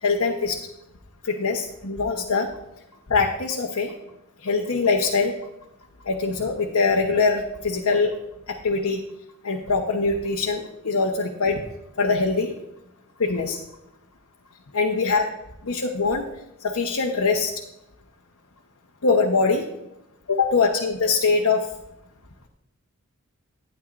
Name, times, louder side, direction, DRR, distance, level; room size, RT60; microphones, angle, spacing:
voice 1, 0.0-0.6 1.2-2.5 3.1-3.9 4.4-5.3 6.0-8.1 8.5-9.0 9.4-11.6 12.0-12.5 13.2-13.6 14.7-15.2 15.7-16.2 16.6-17.5 19.0-19.7 20.3-21.7, left 4 dB, 75° left, 0 dB, 0.9 m, -23 dB
12.5 x 10.0 x 2.5 m, 0.88 s
head